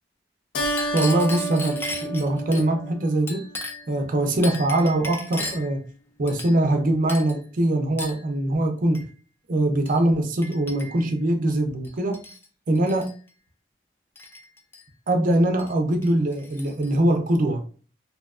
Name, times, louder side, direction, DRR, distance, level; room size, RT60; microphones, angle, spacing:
Keyboard (musical), 0.5-3.4, right 1 dB, 85° left, 0.5 m, -30 dB
Chink clink, 0.6-2.7 3.3-3.9 4.4-5.8 6.3-6.8 7.1-7.4 8.0-8.3 8.9-9.1 9.9-10.0 10.4-11.1 11.8-12.5 12.8-13.1 14.2-14.8 15.6-15.7 16.0-16.9, left 2 dB, 15° left, 0.3 m, -36 dB
voice 1, 0.9-3.5 3.9-5.8 6.2-9.0 9.5-12.2 12.7-13.1 15.1-17.6, right 1 dB, 50° right, 4 dB, 0.5 m, -22 dB
2.7 x 2.2 x 2.3 m, 0.38 s
head